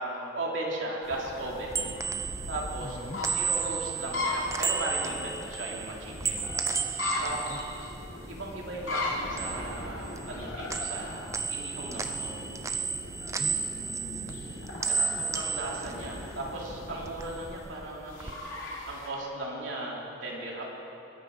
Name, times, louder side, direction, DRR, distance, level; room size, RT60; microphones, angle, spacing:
voice 1, 0.0-3.0 3.3-6.5 7.2-7.4 7.8-7.9 8.3-12.3 14.9-20.6, right 1 dB, 80° right, -3 dB, 3.1 m, -37 dB
sound 1, 1.0-19.1, left 2 dB, 90° left, 3.1 m, -38 dB
sound 2, 1.4-8.7 9.0-10.4 10.7-16.7 17.0-18.3, right 5 dB, 15° right, 0.5 m, -34 dB
voice 2, 2.8-3.2 7.3-7.6 13.4-14.4 14.7-15.4, left 1 dB, 30° left, 1 dB, 0.9 m, -44 dB
21.0 x 11.0 x 5.5 m, 3.0 s
head